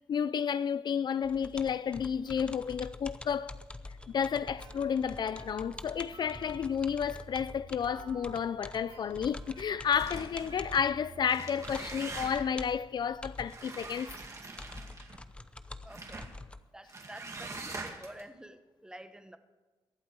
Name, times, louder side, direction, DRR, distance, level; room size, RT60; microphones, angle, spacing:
voice 1, 0.1-3.5 4.1-14.2, left 7 dB, 55° left, 0.4 m, -31 dB
sound 1, 1.2-16.6, left 2 dB, 10° left, 0.7 m, -47 dB
sound 2, 4.0-12.6, right 5 dB, 85° right, 1.4 m, -54 dB
sound 3, 9.9-10.6 11.2-12.6 13.5-15.2 15.9-16.3 16.9-18.2, right 3 dB, 35° right, 2.1 m, -43 dB
voice 2, 15.8-16.3 16.7-19.4, right 1 dB, 10° right, 1.0 m, -49 dB
23.0 x 8.2 x 4.7 m
cardioid pair, 100°, 9 cm